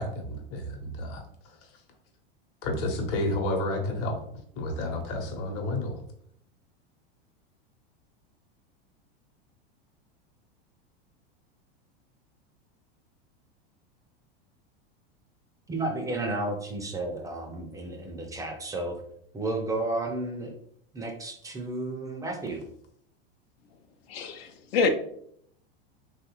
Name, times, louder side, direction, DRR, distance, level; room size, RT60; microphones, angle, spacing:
voice 1, 0.0-1.7 2.6-4.2 4.6-6.0, left 1 dB, 50° left, 2 dB, 0.9 m, -31 dB
voice 2, 15.7-19.0 19.3-20.6 20.9-22.6, right 2 dB, 10° right, 3 dB, 0.4 m, -32 dB
voice 3, 24.1-24.9, left 4 dB, 80° left, 7 dB, 0.5 m, -26 dB
3.2 x 2.4 x 2.9 m, 0.68 s
hypercardioid pair, 115°, 30 cm